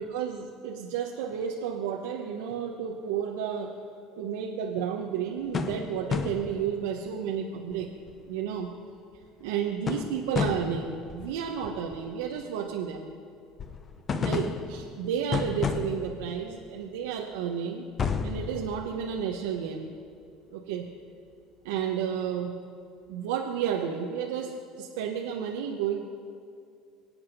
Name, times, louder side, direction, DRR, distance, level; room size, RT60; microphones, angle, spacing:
voice 1, 0.0-3.8 4.2-7.9 8.3-8.7 9.4-13.1 14.2-17.8 18.2-19.9 20.5-20.9 21.6-22.6 23.1-26.0, right 8 dB, 85° right, 1 dB, 1.1 m, -32 dB
sound 1, 5.5-7.0 7.7-7.8 8.1-8.3 9.5-9.6 9.9-12.3 13.6-16.7 17.3-17.4 18.0-19.6, left 5 dB, 35° left, 1.0 m, -32 dB
23.5 x 8.7 x 5.3 m, 2.5 s
supercardioid pair, 90°, 0 cm